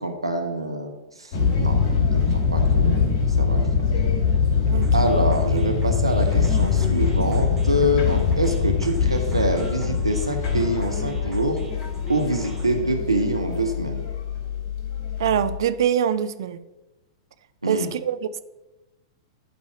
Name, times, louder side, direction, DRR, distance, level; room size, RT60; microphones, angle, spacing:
voice 1, 0.0-3.6 4.9-11.6 12.1-14.0 17.6-17.9, right 1 dB, 90° right, 4 dB, 0.9 m, -25 dB
sound 1, 1.3-15.6, left 6 dB, 40° left, 2.5 m, -23 dB
sound 2, 4.8-12.8, right 3 dB, 15° right, 2.0 m, -44 dB
voice 2, 15.2-16.6 17.7-18.4, right 9 dB, 60° right, 13 dB, 0.5 m, -24 dB
11.5 x 4.1 x 4.8 m, 1.1 s
figure-of-eight pair, 100°, 3 cm